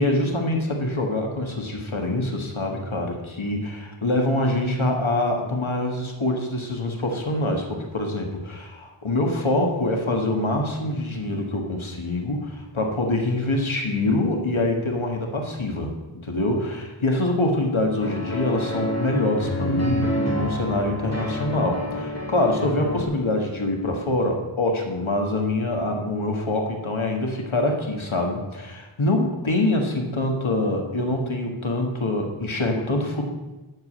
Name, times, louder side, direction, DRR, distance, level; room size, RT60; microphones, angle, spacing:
voice 1, 0.0-15.9 16.2-33.3, left 2 dB, 90° left, 2 dB, 1.7 m, -25 dB
sound 1, 18.0-23.0, equal, 35° left, 2.3 m, -28 dB
13.0 x 4.9 x 8.7 m, 1.1 s
wide cardioid pair, 40°, 46 cm